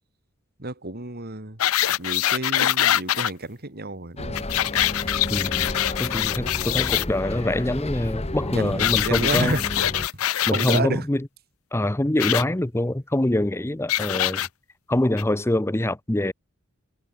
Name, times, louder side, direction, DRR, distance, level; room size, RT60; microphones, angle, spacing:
voice 1, 0.6-1.6 2.0-4.5 8.5-9.6 9.9-10.0 10.4-11.1, right 2 dB, 45° right, 3.0 m, -30 dB
sound 1, 1.6-3.3 4.3-7.0 8.8-10.8 12.2-12.4 13.9-14.5 15.2-15.3, left 12 dB, 75° left, 0.6 m, -23 dB
Bus, 4.2-10.1, left 2 dB, 30° left, 1.5 m, -32 dB
voice 2, 5.3-5.7 6.0-9.6 10.5-11.3 11.7-14.5 14.9-16.3, left 1 dB, 10° left, 0.7 m, -24 dB
head